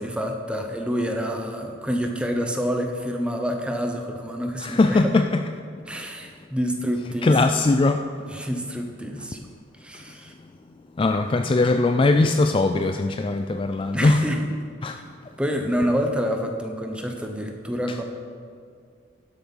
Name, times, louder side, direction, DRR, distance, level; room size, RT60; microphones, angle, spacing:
voice 1, 0.0-5.0 5.9-7.3 8.3-9.4 9.8-10.3 13.9-14.4 14.9-15.0 15.4-18.0, equal, 5° right, 3 dB, 0.9 m, -27 dB
voice 2, 4.6-5.4 7.2-8.0 11.0-14.2 14.8-15.0, left 2 dB, 25° left, 7 dB, 0.3 m, -20 dB
11.5 x 7.7 x 5.5 m, 2.3 s
head